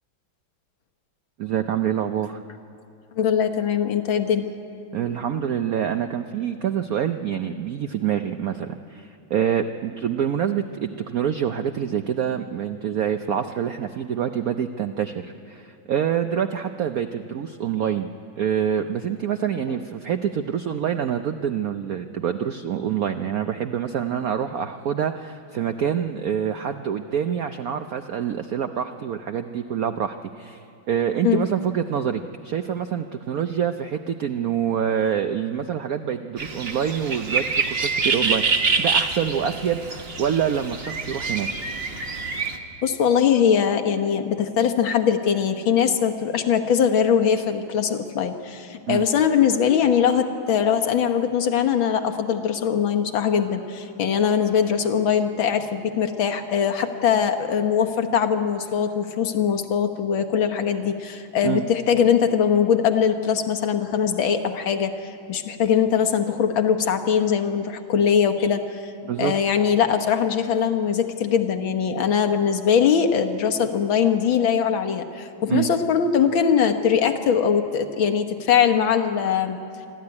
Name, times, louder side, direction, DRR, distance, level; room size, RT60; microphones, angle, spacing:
voice 1, 1.4-2.4 4.9-10.6 11.1-18.1 18.4-41.5 48.9-49.0 61.4-61.6 69.0-69.3 75.5-75.7, right 8 dB, 75° right, 8 dB, 0.8 m, -26 dB
voice 2, 3.2-4.5 31.2-31.4 42.8-68.9 69.2-79.6, left 7 dB, 70° left, 7 dB, 1.9 m, -21 dB
sound 1, 36.4-42.6, right 4 dB, 35° right, 1.2 m, -26 dB
25.0 x 13.5 x 9.6 m, 2.5 s
omnidirectional pair, 2.3 m